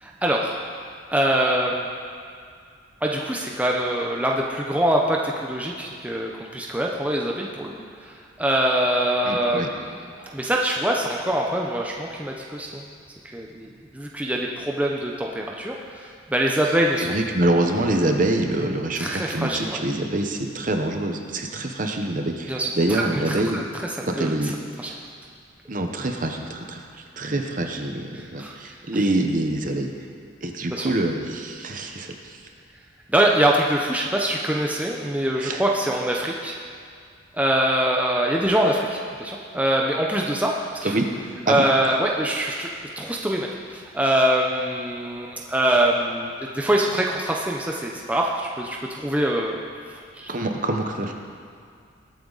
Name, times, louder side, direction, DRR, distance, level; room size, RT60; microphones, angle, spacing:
voice 1, 0.0-0.6 1.1-1.9 3.0-7.7 8.4-9.8 10.3-12.8 13.3-13.7 13.9-15.7 16.0-17.1 19.0-19.8 22.5-23.6 24.0-24.3 24.8-24.9 28.1-28.5 30.7-30.9 33.1-36.5 37.3-40.5 40.8-40.9 41.5-42.7 43.0-46.3 46.5-49.5 50.1-50.3, right 1 dB, 5° right, -1 dB, 0.7 m, -24 dB
voice 2, 9.2-9.7 16.6-23.6 24.0-24.5 25.7-29.9 30.4-32.4 35.4-35.6 40.8-41.1 41.5-41.6 50.3-51.1, right 1 dB, 40° right, 4 dB, 0.9 m, -25 dB
20.5 x 8.6 x 4.0 m, 2.3 s
head